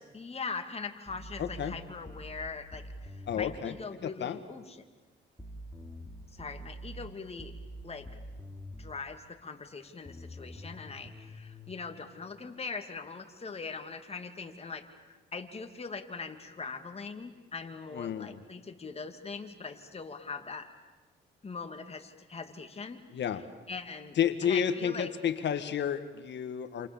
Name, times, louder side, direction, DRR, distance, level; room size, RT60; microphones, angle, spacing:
voice 1, 0.1-4.8 6.3-7.5 7.8-8.1 8.8-20.7 21.4-23.0 23.7-24.2 24.4-25.1, left 4 dB, 30° left, 6 dB, 2.8 m, -41 dB
sound 1, 1.1-3.6 5.4-9.0 10.1-11.7, equal, 5° left, 3.7 m, -45 dB
voice 2, 1.4-1.7 3.3-3.7 4.0-4.4 17.9-18.4 23.1-23.4 24.2-26.9, left 8 dB, 65° left, 10 dB, 1.7 m, -31 dB
28.5 x 28.0 x 7.2 m, 1.2 s
cardioid pair, 90°, 20 cm